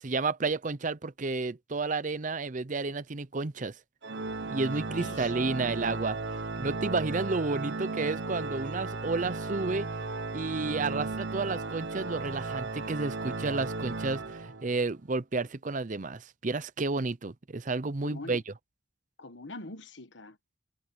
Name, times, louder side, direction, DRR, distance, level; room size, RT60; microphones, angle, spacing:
voice 1, 0.0-3.7 4.5-6.2 6.6-9.9 10.3-18.4, right 3 dB, 40° right, 0.6 m, -31 dB
Organ, 4.0-14.9, right 3 dB, 60° right, 1.1 m, -35 dB
voice 2, 4.7-5.3 18.0-18.4 19.2-20.6, left 2 dB, 65° left, 1.4 m, -44 dB
head